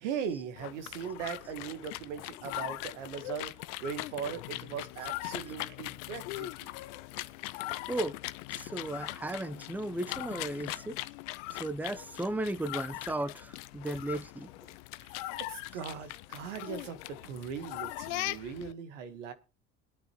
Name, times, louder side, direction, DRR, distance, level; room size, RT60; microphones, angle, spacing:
voice 1, 0.0-3.5 3.8-6.7 15.4-19.3, right 7 dB, 90° right, 1.5 m, -39 dB
sound 1, 0.6-18.7, left 18 dB, 75° left, 0.6 m, -40 dB
voice 2, 8.5-11.0 11.6-14.5, right 1 dB, 5° right, 0.8 m, -35 dB
21.5 x 9.1 x 3.1 m
hypercardioid pair, 75°, 35 cm